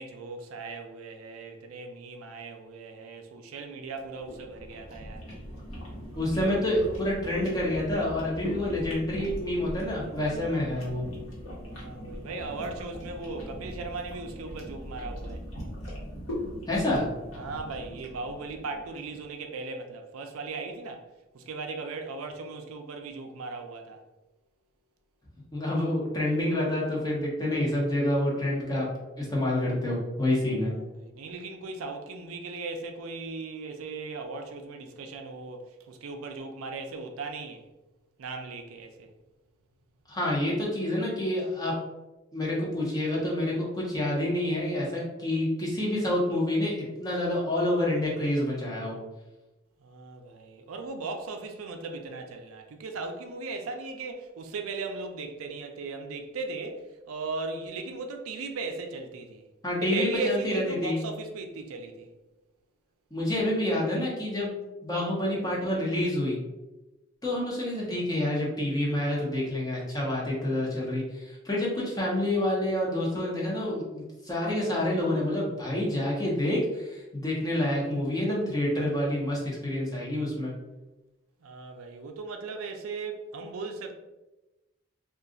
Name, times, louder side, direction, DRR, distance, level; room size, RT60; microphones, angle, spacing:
voice 1, 0.0-5.3 11.6-15.4 17.3-21.0 21.3-24.0 30.8-37.6 38.2-39.1 49.8-59.4 59.8-62.1 81.4-83.9, right 3 dB, 90° right, 0.4 m, -37 dB
sound 1, 3.9-19.2, equal, 85° left, 1.1 m, -40 dB
voice 2, 6.1-11.0 16.7-17.1 25.5-28.9 29.2-30.7 40.1-41.7 42.3-46.7 47.0-49.0 59.6-61.0 63.1-64.6 64.8-66.4 67.2-80.5, left 1 dB, 20° left, 0.8 m, -28 dB
2.4 x 2.3 x 3.8 m
head